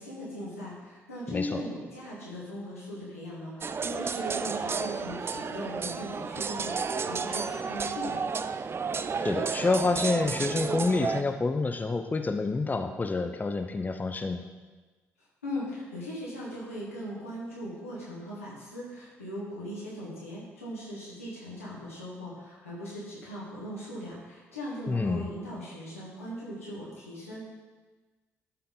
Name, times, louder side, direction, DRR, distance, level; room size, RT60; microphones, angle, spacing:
voice 1, 0.0-8.2 15.4-27.4, equal, 85° left, -8 dB, 2.2 m, -39 dB
voice 2, 1.3-1.6 9.2-14.4 24.9-25.3, left 3 dB, 25° left, 6 dB, 0.7 m, -28 dB
sound 1, 3.6-11.2, right 5 dB, 35° right, 0.4 m, -32 dB
12.5 x 5.7 x 3.9 m, 1.3 s
figure-of-eight pair, 40°, 7 cm